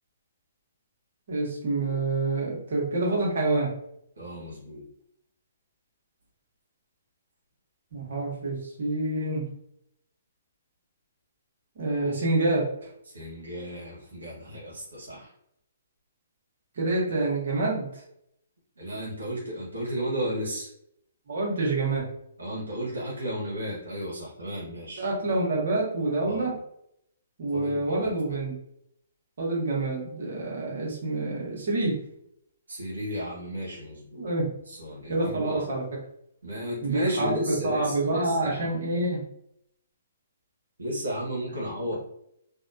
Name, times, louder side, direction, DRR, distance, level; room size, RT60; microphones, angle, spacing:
voice 1, 1.3-3.7 7.9-9.4 11.8-12.9 16.8-18.0 21.3-22.1 25.0-26.5 27.4-28.5 29.4-32.0 34.1-34.5 35.1-35.8 36.8-39.2, right 2 dB, 60° right, -3 dB, 1.2 m, -27 dB
voice 2, 4.2-4.8 13.1-15.3 18.8-20.7 22.4-25.1 26.2-26.5 27.5-28.4 32.7-34.3 34.7-35.6 36.4-38.8 40.8-41.9, equal, 85° right, -5 dB, 0.9 m, -34 dB
2.7 x 2.2 x 2.6 m, 0.74 s
hypercardioid pair, 135°, 0 cm